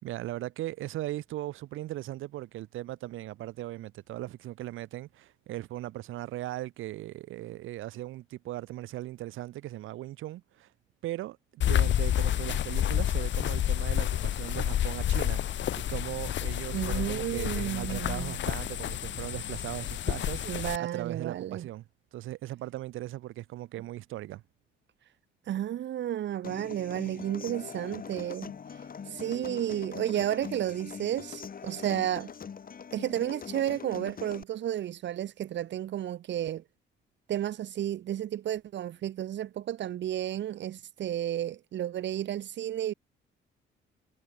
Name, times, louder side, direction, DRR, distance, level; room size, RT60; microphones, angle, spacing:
voice 1, 0.0-10.7 11.0-21.8 22.1-24.4, right 15 dB, 85° right, 2.6 m, -38 dB
sound 1, 11.6-20.8, left 11 dB, 65° left, 1.6 m, -29 dB
voice 2, 16.7-18.4 20.4-21.7 25.5-28.5 29.1-32.3 32.9-36.6 37.3-42.9, right 11 dB, 65° right, 1.1 m, -32 dB
Human voice / Acoustic guitar, 26.4-34.4, left 6 dB, 45° left, 7.7 m, -43 dB
cardioid pair, 90°, 20 cm